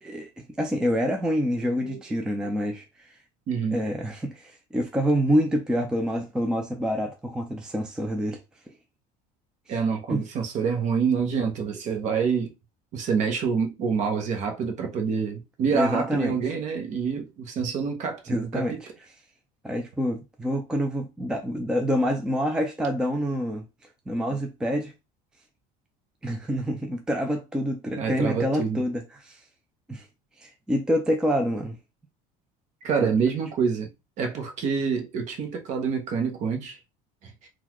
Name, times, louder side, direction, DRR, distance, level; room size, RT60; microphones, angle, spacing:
voice 1, 0.0-3.1 3.7-8.4 8.7-8.8 10.1-10.2 15.7-16.4 18.3-18.7 19.6-23.7 24.1-24.9 26.2-29.4 29.9-30.1 30.4-31.8 33.0-33.1, equal, 5° right, 0.4 m, -27 dB
voice 2, 3.5-3.8 9.7-12.5 12.9-18.8 28.0-28.8 32.8-33.9 34.2-36.8 37.2-37.5, right 6 dB, 40° right, 0.9 m, -27 dB
3.8 x 2.3 x 3.0 m
cardioid pair, 150°, 18 cm